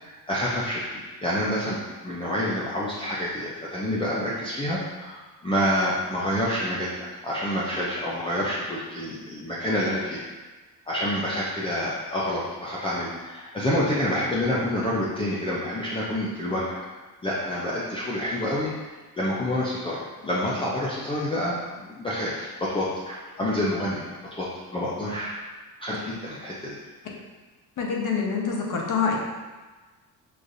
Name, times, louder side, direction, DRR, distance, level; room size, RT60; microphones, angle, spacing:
voice 1, 0.0-10.2 10.9-16.8 17.2-24.0 24.3-25.3 25.8-26.8, left 1 dB, 15° left, -7 dB, 0.5 m, -28 dB
voice 2, 27.8-29.2, left 5 dB, 55° left, -1 dB, 0.9 m, -25 dB
6.3 x 2.6 x 2.5 m, 1.3 s
cardioid pair, 140°, 38 cm